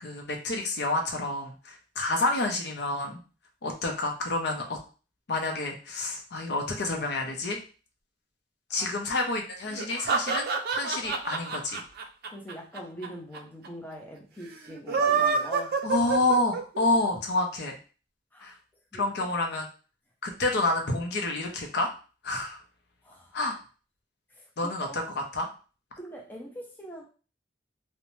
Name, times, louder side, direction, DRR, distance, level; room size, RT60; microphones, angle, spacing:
voice 1, 0.0-3.2 3.6-4.6 5.3-7.6 8.7-11.8 15.8-17.7 18.4-18.5 19.0-19.7 20.2-21.9 22.2-22.6 23.3-23.6 24.6-25.0 25.3-25.5, left 2 dB, 65° left, 2 dB, 0.6 m, -28 dB
sound 1, 9.7-13.1 13.3-13.4 13.6-13.7 14.7-16.9, right 5 dB, 60° right, 0.4 m, -27 dB
voice 2, 12.3-15.8 18.3-18.6 18.9-19.3 23.0-23.4 24.3-25.0 26.0-27.0, equal, 10° left, -1 dB, 0.5 m, -43 dB
2.6 x 2.1 x 3.0 m, 0.36 s
head